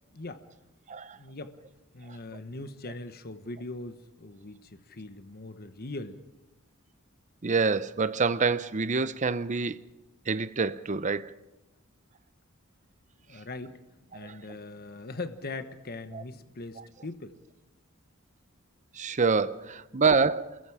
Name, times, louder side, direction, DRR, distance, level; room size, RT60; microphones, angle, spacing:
voice 1, 0.1-0.4 1.2-1.6 1.9-6.2 13.3-13.8 14.1-17.4, left 2 dB, 50° left, 1.2 m, -40 dB
voice 2, 7.4-9.8 10.3-11.3 14.1-14.4 16.1-16.2 16.8-16.9 18.9-20.6, right 4 dB, 35° right, 0.7 m, -27 dB
28.0 x 22.0 x 4.9 m
head